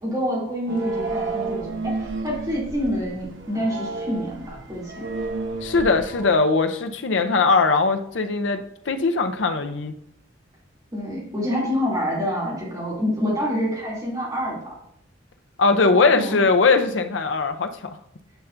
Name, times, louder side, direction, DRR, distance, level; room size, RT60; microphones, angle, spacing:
voice 1, 0.0-5.0 10.9-14.6 15.9-16.4, equal, 20° right, -6 dB, 2.9 m, -27 dB
sound 1, 0.7-6.3, right 3 dB, 90° right, 0.9 m, -31 dB
voice 2, 5.6-9.9 15.6-17.7, left 4 dB, 75° left, 7 dB, 0.6 m, -20 dB
9.1 x 5.6 x 2.6 m, 0.73 s
head